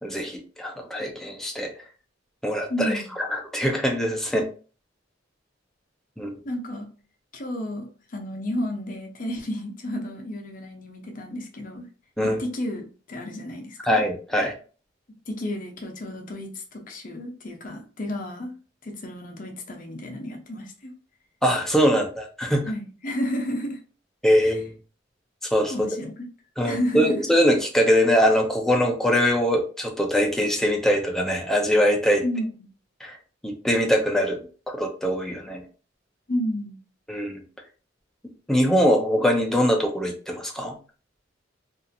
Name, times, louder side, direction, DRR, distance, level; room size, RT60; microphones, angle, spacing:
voice 1, 0.0-1.7 2.4-3.0 3.3-4.5 6.2-6.4 12.2-12.4 13.9-14.5 21.4-22.7 24.2-24.7 25.5-25.7 26.6-32.2 33.0-33.2 33.4-35.6 37.1-37.4 38.5-40.8, equal, ahead, 0.5 m, -22 dB
voice 2, 2.7-3.1 6.4-6.9 7.3-11.9 12.2-14.0 15.1-18.5 18.8-20.9 22.6-23.8 24.4-24.6 25.7-26.1 26.6-27.2 32.2-32.7 36.3-36.8, left 1 dB, 45° left, 0.6 m, -31 dB
2.7 x 2.4 x 2.6 m
head